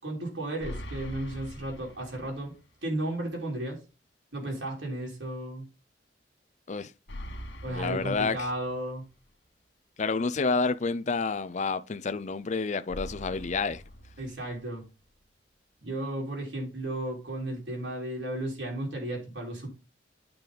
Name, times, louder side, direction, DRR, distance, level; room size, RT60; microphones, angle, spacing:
voice 1, 0.0-2.5 2.8-3.8 4.3-5.7 7.6-9.0 14.2-14.8 15.8-19.7, right 1 dB, 85° right, 4.0 m, -34 dB
sound 1, 0.6-2.6 3.0-3.1 7.1-9.1 12.9-14.9, equal, 80° left, 1.5 m, -43 dB
voice 2, 7.7-8.5 10.0-13.8, left 4 dB, 40° left, 0.5 m, -29 dB
9.1 x 5.3 x 3.9 m
head